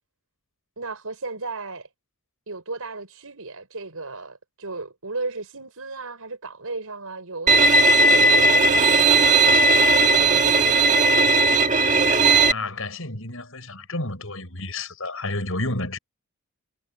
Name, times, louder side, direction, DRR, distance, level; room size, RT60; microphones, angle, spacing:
voice 1, 0.8-1.9 2.5-11.2, right 3 dB, 80° right, 4.8 m, -35 dB
Bowed string instrument, 7.5-12.5, right 2 dB, 35° right, 2.0 m, -17 dB
voice 2, 11.8-16.0, left 2 dB, 65° left, 6.8 m, -31 dB
head